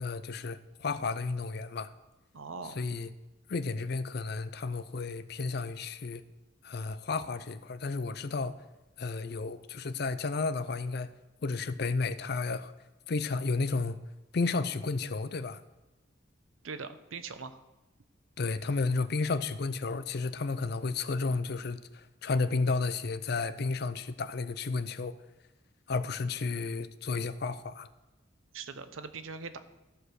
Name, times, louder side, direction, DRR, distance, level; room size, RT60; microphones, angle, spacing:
voice 1, 0.0-1.9 2.8-3.1 3.5-6.2 6.6-8.6 9.0-11.1 11.4-12.7 13.1-14.0 14.3-15.6 18.4-25.2 25.9-27.9, left 4 dB, 55° left, 0.5 m, -32 dB
voice 2, 2.3-2.8 16.6-17.6 28.5-29.6, right 4 dB, 85° right, 0.8 m, -41 dB
13.5 x 5.0 x 6.3 m
head